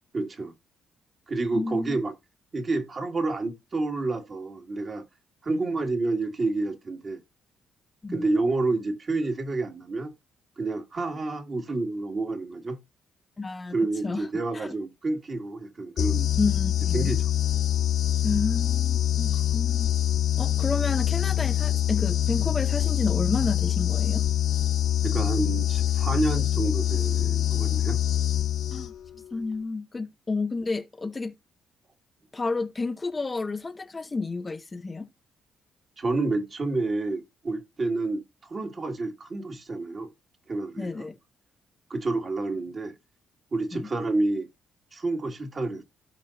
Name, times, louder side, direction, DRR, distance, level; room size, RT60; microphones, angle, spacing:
voice 1, 0.1-0.5 1.3-2.1 2.5-5.0 5.4-7.2 8.1-10.1 10.6-12.8 13.7-16.3 16.9-17.2 25.0-28.0 36.0-40.1 40.5-41.1 41.9-42.9 43.5-44.5 44.9-45.8, right 2 dB, 40° right, 2.0 m, -29 dB
voice 2, 1.5-2.0 5.5-5.6 8.0-8.2 13.4-13.8 14.0-14.3 14.5-14.7 16.4-17.1 18.2-19.9 20.4-24.2 28.7-28.9 29.3-31.3 32.3-35.1 40.8-41.2 43.7-43.9, left 3 dB, 25° left, 0.7 m, -30 dB
sound 1, 16.0-29.1, left 11 dB, 60° left, 0.4 m, -25 dB
15.5 x 5.3 x 2.6 m
cardioid pair, 90°, 0 cm